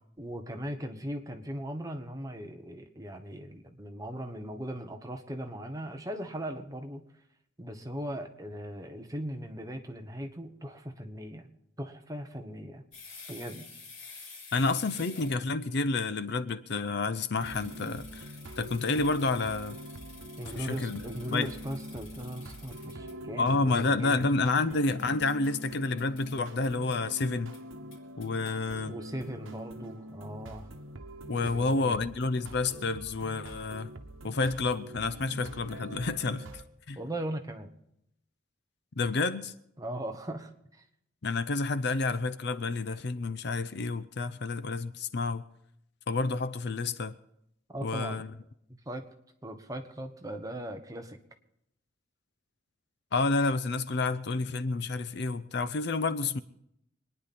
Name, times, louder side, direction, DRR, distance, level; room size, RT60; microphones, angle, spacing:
voice 1, 0.2-7.0 7.6-11.5 11.8-12.8 13.3-13.7 20.4-24.3 28.8-30.7 31.4-32.1 37.0-37.7 39.8-40.9 47.7-48.2 48.7-49.0 49.4-51.2, equal, 20° right, 1.1 m, -39 dB
sound 1, 12.9-15.5 17.4-23.1 24.9-25.7 26.0-26.4 26.6-27.2 27.5-27.6 27.9-28.5, left 4 dB, 80° left, 3.6 m, -50 dB
voice 2, 14.5-18.3 18.6-19.8 20.6-21.0 21.3-21.5 23.4-27.5 28.2-28.9 31.3-33.9 34.2-36.5 36.9-37.0 39.0-39.5 41.2-45.4 46.1-47.1 47.8-48.3 53.1-56.4, left 3 dB, 55° left, 0.6 m, -29 dB
sound 2, 17.4-36.6, equal, 85° right, 1.1 m, -44 dB
25.5 x 10.0 x 4.2 m
head